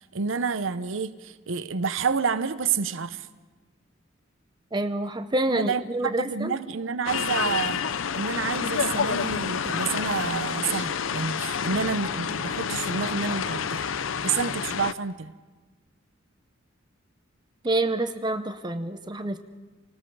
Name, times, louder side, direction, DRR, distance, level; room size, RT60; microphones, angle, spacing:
voice 1, 0.1-3.3 5.5-7.8 8.1-13.8 14.2-15.3, right 5 dB, 75° right, 0.7 m, -29 dB
voice 2, 4.7-6.6 17.6-19.4, right 2 dB, 20° right, 0.7 m, -27 dB
sound 1, 7.1-14.9, left 7 dB, 80° left, 0.6 m, -29 dB
30.0 x 19.5 x 4.7 m
head